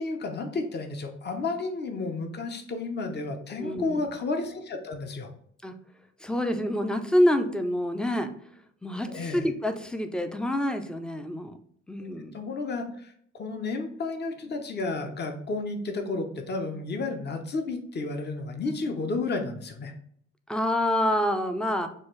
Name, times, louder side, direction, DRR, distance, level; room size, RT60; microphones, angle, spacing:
voice 1, 0.0-5.3 9.1-9.4 12.3-19.9, left 3 dB, 35° left, 5 dB, 0.8 m, -32 dB
voice 2, 3.6-4.1 5.6-5.7 6.2-8.3 8.8-11.5 11.9-12.4 20.5-21.9, left 1 dB, 5° left, 7 dB, 0.5 m, -27 dB
6.3 x 2.4 x 3.1 m, 0.64 s
cardioid pair, 90°, 30 cm